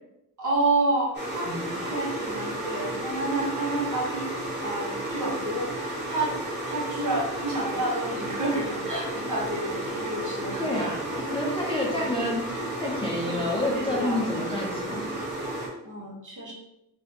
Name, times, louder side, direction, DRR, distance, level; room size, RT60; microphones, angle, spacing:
voice 1, 0.4-6.3 6.6-10.7 12.0-12.2 13.3-14.2 15.8-16.5, right 2 dB, 50° right, -4 dB, 1.1 m, -30 dB
sound 1, 1.1-15.7, right 1 dB, 25° right, 1.0 m, -32 dB
voice 2, 1.5-1.8 10.6-15.1, left 1 dB, 15° left, -4 dB, 0.4 m, -29 dB
4.0 x 2.6 x 2.8 m, 0.84 s
wide cardioid pair, 175°, 41 cm